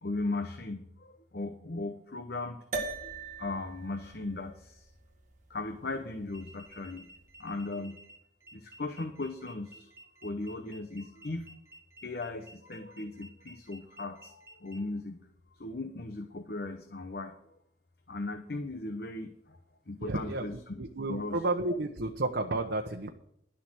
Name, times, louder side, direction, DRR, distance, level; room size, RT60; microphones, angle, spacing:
voice 1, 0.0-2.6 3.0-4.9 5.5-7.1 7.4-8.1 8.5-9.9 10.2-11.5 12.0-15.3 15.5-17.3 18.1-19.6 19.9-20.8 21.1-21.4 21.7-21.8, left 2 dB, 60° left, 7 dB, 1.0 m, -37 dB
sound 1, 2.7-7.3, right 3 dB, 45° right, 2.1 m, -42 dB
sound 2, 6.3-14.8, right 2 dB, 15° right, 1.5 m, -54 dB
voice 2, 20.0-20.5 20.8-23.1, right 2 dB, 85° right, 3 dB, 1.0 m, -31 dB
12.0 x 7.5 x 6.3 m, 0.74 s
head